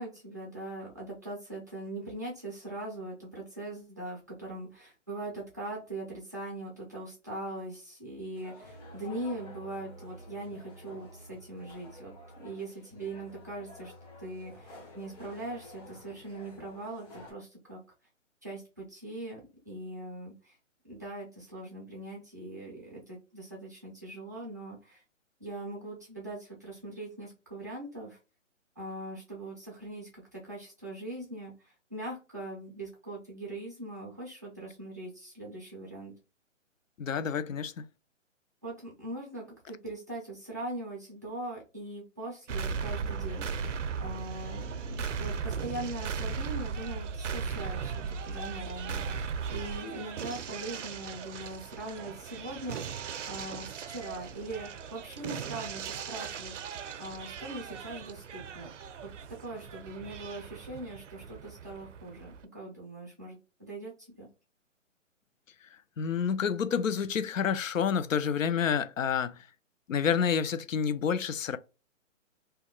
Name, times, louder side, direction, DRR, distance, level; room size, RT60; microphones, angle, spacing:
voice 1, 0.0-13.9 14.2-17.8 18.4-20.6 20.8-25.0 25.4-28.2 28.8-36.1 38.6-43.7 44.0-59.1 59.4-64.3, right 1 dB, 15° right, 0.4 m, -41 dB
sound 1, 8.3-17.3, left 1 dB, 30° left, 1.0 m, -50 dB
voice 2, 37.0-37.8 66.0-69.5 69.9-71.6, left 7 dB, 85° left, 0.5 m, -29 dB
sound 2, 42.5-62.4, right 6 dB, 70° right, 0.5 m, -37 dB
2.8 x 2.2 x 3.5 m
figure-of-eight pair, 140°, 39 cm